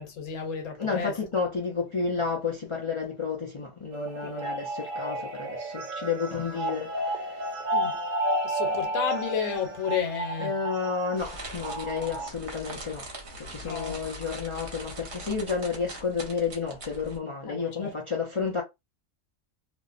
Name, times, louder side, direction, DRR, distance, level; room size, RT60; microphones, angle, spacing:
voice 1, 0.0-1.1 4.2-4.5 7.7-8.0 8.4-10.5 13.6-14.0 17.5-17.9, left 7 dB, 75° left, 1.1 m, -32 dB
voice 2, 0.8-7.7 10.4-13.1 13.3-18.6, left 5 dB, 55° left, 0.3 m, -31 dB
sound 1, 3.9-12.3, right 1 dB, 90° right, 1.0 m, -32 dB
sound 2, 11.2-17.2, right 1 dB, 55° right, 1.0 m, -42 dB
2.5 x 2.0 x 2.4 m
omnidirectional pair, 1.3 m